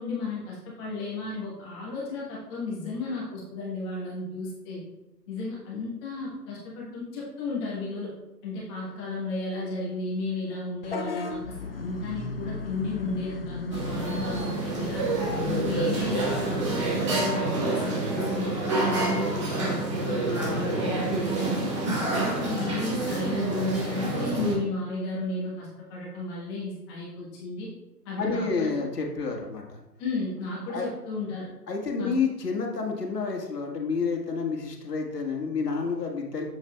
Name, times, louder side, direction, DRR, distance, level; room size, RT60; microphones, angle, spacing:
voice 1, 0.0-4.8 5.3-8.1 8.4-15.0 15.4-16.8 17.1-21.7 22.0-27.7 28.0-28.7 30.0-31.5 32.0-32.1, left 3 dB, 15° left, -5 dB, 1.3 m, -34 dB
Vehicle horn car horn honking / Bus, 10.8-16.9, left 3 dB, 40° left, 0.5 m, -37 dB
sound 1, 13.7-24.5, right 2 dB, 20° right, 0.9 m, -28 dB
voice 2, 28.2-29.8 30.7-30.9 31.7-36.4, left 4 dB, 70° left, 1 dB, 1.8 m, -29 dB
7.2 x 7.2 x 2.3 m, 0.96 s
hypercardioid pair, 150°, 50 cm